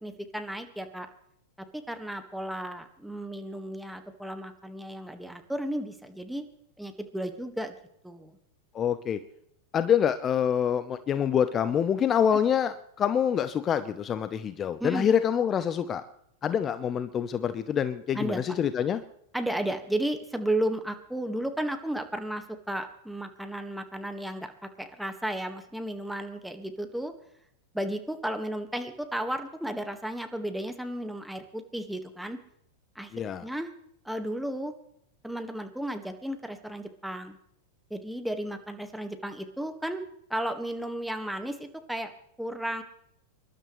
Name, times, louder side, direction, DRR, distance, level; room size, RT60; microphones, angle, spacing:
voice 1, 0.0-1.1 1.7-6.4 6.8-7.8 8.0-8.4 14.8-15.1 18.1-18.4 19.3-27.1 27.7-32.4 32.9-33.1 33.4-33.7 34.0-34.7 35.2-37.4 37.9-40.0 40.3-42.1 42.4-42.8, right 1 dB, ahead, 7 dB, 1.7 m, -33 dB
voice 2, 8.7-9.2 9.7-16.0 16.4-19.0 33.1-33.4, left 8 dB, 30° left, 12 dB, 0.8 m, -26 dB
25.5 x 12.0 x 3.2 m, 0.73 s
hypercardioid pair, 100°, 0 cm